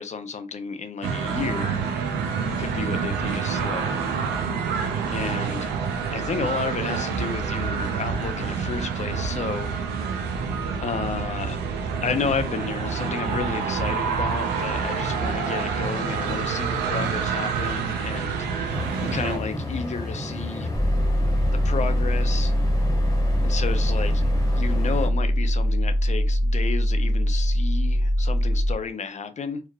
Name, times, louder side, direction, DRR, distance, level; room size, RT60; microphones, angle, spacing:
voice 1, 0.0-1.8 2.6-4.0 5.1-5.7 6.1-9.7 10.8-11.6 12.0-20.7 21.6-22.5 23.4-24.2 24.5-29.6, left 5 dB, 45° left, 0.5 m, -32 dB
sound 1, 1.0-19.4, right 5 dB, 85° right, 0.4 m, -27 dB
sound 2, 18.7-25.1, left 1 dB, 20° left, 1.2 m, -32 dB
sound 3, 20.7-28.7, equal, 10° right, 0.5 m, -22 dB
2.8 x 2.3 x 2.3 m
hypercardioid pair, 40°, 17 cm